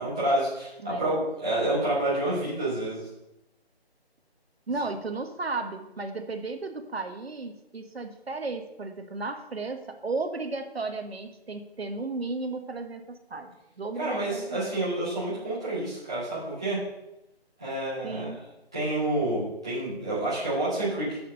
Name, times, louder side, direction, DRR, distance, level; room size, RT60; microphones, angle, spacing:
voice 1, 0.0-3.1 14.0-16.8 17.6-18.4 18.7-21.2, right 1 dB, 5° right, -14 dB, 0.8 m, -28 dB
voice 2, 0.8-1.2 4.7-14.6 18.0-18.4, right 3 dB, 70° right, 7 dB, 1.4 m, -34 dB
7.1 x 6.6 x 6.5 m, 0.88 s
figure-of-eight pair, 170°, 32 cm